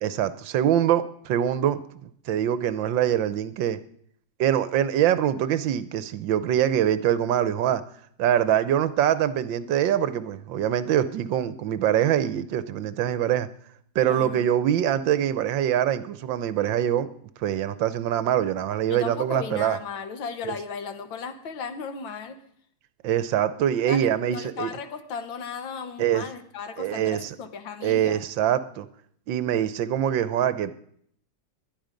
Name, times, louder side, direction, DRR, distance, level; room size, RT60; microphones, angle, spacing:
voice 1, 0.0-3.8 4.4-7.8 8.2-13.5 13.9-17.1 17.4-19.8 20.4-20.5 23.0-24.7 26.0-26.3 26.8-27.3 27.8-28.9 29.3-30.7, right 10 dB, 75° right, 1.5 m, -24 dB
voice 2, 14.0-14.5 18.9-22.4 23.9-28.2, left 6 dB, 80° left, 2.1 m, -36 dB
21.0 x 10.5 x 5.2 m
omnidirectional pair, 2.1 m